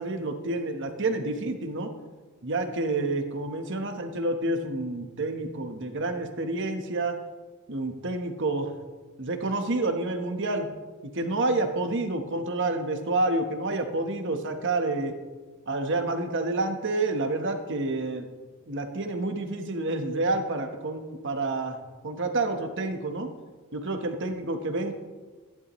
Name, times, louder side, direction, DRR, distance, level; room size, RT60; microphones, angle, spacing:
voice 1, 0.0-1.9 2.4-7.2 7.7-8.7 9.2-10.7 11.1-15.1 15.7-18.3 18.7-23.3 23.7-24.9, right 2 dB, 55° right, 6 dB, 1.2 m, -29 dB
15.5 x 11.0 x 3.1 m, 1.3 s
head